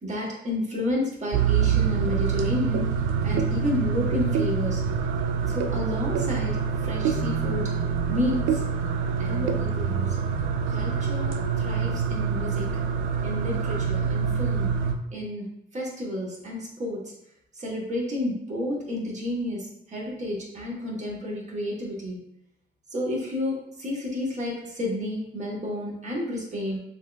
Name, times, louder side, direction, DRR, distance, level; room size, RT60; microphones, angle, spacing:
voice 1, 0.0-2.9 3.2-4.8 5.5-7.7 8.1-8.6 9.2-10.2 10.7-12.6 13.2-14.7 15.1-15.5 15.7-17.0 17.5-22.2 22.9-26.8, left 1 dB, 35° right, -4 dB, 1.4 m, -31 dB
sound 1, 1.3-14.9, right 6 dB, 85° right, 0.4 m, -26 dB
6.3 x 2.5 x 2.2 m, 0.78 s
cardioid pair, 90°, 20 cm